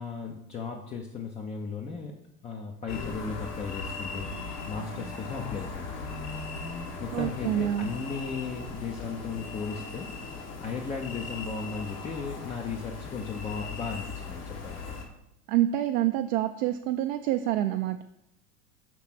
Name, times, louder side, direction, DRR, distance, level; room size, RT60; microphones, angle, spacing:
voice 1, 0.0-2.2 2.4-4.4 4.7-6.1 7.0-10.1 10.6-14.9, left 5 dB, 15° left, 1 dB, 0.4 m, -36 dB
sound 1, 2.9-15.0, left 4 dB, 75° left, 1.4 m, -38 dB
voice 2, 7.1-7.9 15.5-18.0, right 13 dB, 60° right, 6 dB, 0.5 m, -27 dB
6.0 x 3.2 x 5.8 m, 0.83 s
hypercardioid pair, 90°, 47 cm